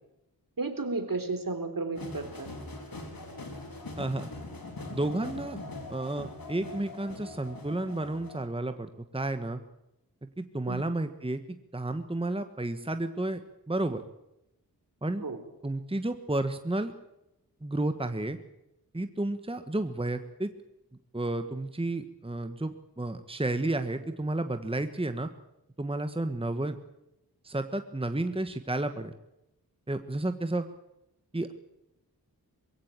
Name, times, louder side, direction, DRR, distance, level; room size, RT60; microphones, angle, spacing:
voice 1, 0.6-2.5 10.7-10.9 15.2-15.4, right 3 dB, 60° right, 8 dB, 3.8 m, -33 dB
sound 1, 1.9-8.4, left 2 dB, 65° left, 4.6 m, -42 dB
voice 2, 4.0-4.3 4.9-5.6 5.9-9.6 10.2-11.4 11.7-13.4 13.7-14.0 15.0-15.2 15.6-16.9 17.6-18.4 18.9-20.5 21.1-25.3 25.8-26.7 27.4-29.1 29.9-30.6 31.3-31.5, right 2 dB, 15° right, 8 dB, 1.4 m, -31 dB
22.5 x 16.5 x 8.9 m, 0.88 s
wide cardioid pair, 75°, 38 cm